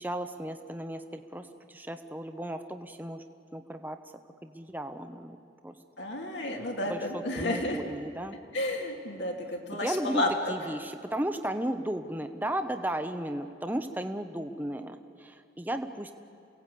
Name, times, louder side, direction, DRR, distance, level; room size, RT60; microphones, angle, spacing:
voice 1, 0.0-3.2 3.5-4.1 4.4-5.4 5.6-5.7 6.9-8.4 9.8-10.2 10.5-16.1, right 1 dB, 10° right, 7 dB, 0.8 m, -35 dB
voice 2, 6.0-7.8 8.5-10.3, left 1 dB, 80° left, 0 dB, 2.6 m, -31 dB
28.0 x 17.5 x 8.3 m, 2.6 s
head